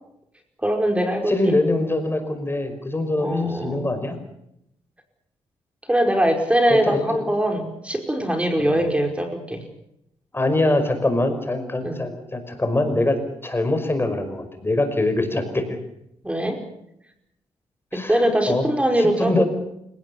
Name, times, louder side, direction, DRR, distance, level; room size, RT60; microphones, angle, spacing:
voice 1, 0.6-1.6 3.2-3.9 5.9-9.6 11.8-12.0 16.2-16.6 17.9-19.4, right 1 dB, 10° right, 4 dB, 5.1 m, -22 dB
voice 2, 1.3-4.2 6.7-7.2 8.6-8.9 10.3-15.7 17.9-18.7 19.0-19.4, left 2 dB, 20° left, 8 dB, 5.4 m, -23 dB
29.0 x 17.5 x 7.2 m, 0.78 s
cardioid pair, 75°, 11 cm